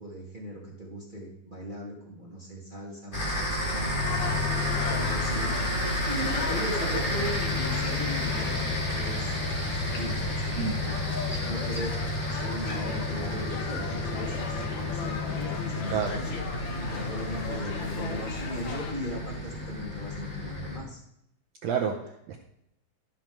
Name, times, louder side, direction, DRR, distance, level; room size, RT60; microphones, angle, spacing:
voice 1, 0.0-4.6 4.9-5.5 6.0-10.9 11.4-16.3 16.8-21.0, equal, 30° right, -3 dB, 0.8 m, -39 dB
sound 1, 3.1-20.8, left 1 dB, 15° left, 2.2 m, -31 dB
sound 2, 4.0-18.9, left 4 dB, 65° left, 1.2 m, -37 dB
voice 2, 21.6-22.4, right 7 dB, 75° right, 3 dB, 1.5 m, -29 dB
13.0 x 5.7 x 4.5 m, 0.80 s
omnidirectional pair, 3.8 m